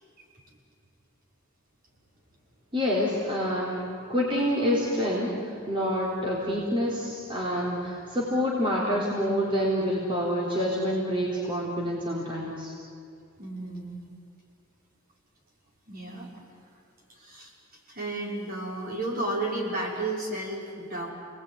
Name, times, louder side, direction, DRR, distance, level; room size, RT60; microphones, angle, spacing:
voice 1, 2.7-3.8 4.1-12.7, equal, 25° right, -5 dB, 3.8 m, -27 dB
voice 2, 13.4-14.0 15.9-16.3 17.1-17.5 17.9-21.1, right 2 dB, 45° right, -3 dB, 5.6 m, -32 dB
30.0 x 19.5 x 9.7 m, 2.4 s
head